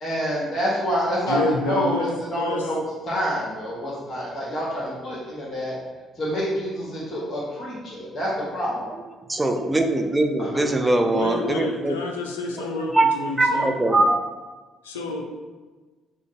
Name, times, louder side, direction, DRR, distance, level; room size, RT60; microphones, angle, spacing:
voice 1, 0.0-1.9 2.3-2.8 3.1-5.8 6.2-8.9 10.4-10.5, equal, 40° left, -7 dB, 0.9 m, -27 dB
voice 2, 1.3-2.1 2.4-2.7 11.1-13.7 14.8-15.3, left 2 dB, 85° left, 1 dB, 0.3 m, -28 dB
voice 3, 9.3-11.9 12.6-12.7 12.9-13.1 13.4-14.2, right 2 dB, 20° right, 5 dB, 0.4 m, -21 dB
3.7 x 2.2 x 2.5 m, 1.3 s
figure-of-eight pair, 45°, 0 cm